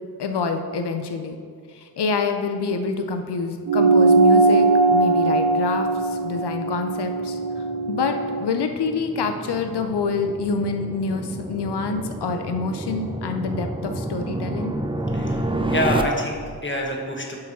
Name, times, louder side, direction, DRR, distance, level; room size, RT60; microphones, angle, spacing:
voice 1, 0.2-1.4 1.7-14.7, left 4 dB, 80° left, 6 dB, 0.6 m, -27 dB
sound 1, 3.7-8.5, right 3 dB, 85° right, 0.6 m, -19 dB
sound 2, 4.9-16.0, right 2 dB, 15° right, 0.6 m, -31 dB
voice 2, 15.1-17.4, left 1 dB, 30° left, 0 dB, 1.5 m, -27 dB
7.3 x 4.8 x 6.1 m, 2.1 s
wide cardioid pair, 50°, 39 cm